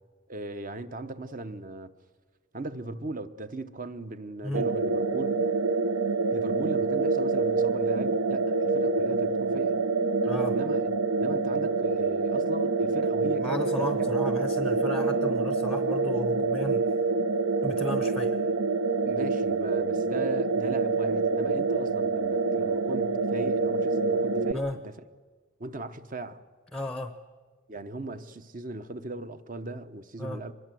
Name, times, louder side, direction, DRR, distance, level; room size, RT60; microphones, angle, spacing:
voice 1, 0.3-1.9 2.5-5.5 6.3-9.8 10.5-13.9 19.1-24.9 25.6-26.4 27.7-30.5, right 2 dB, 40° right, 0.9 m, -38 dB
sound 1, 4.5-24.5, right 3 dB, 70° right, 0.7 m, -26 dB
voice 2, 10.2-10.6 13.4-16.9 17.6-18.4 24.5-24.8 26.7-27.2 30.2-30.4, left 1 dB, 5° left, 0.7 m, -34 dB
24.5 x 21.0 x 7.7 m
head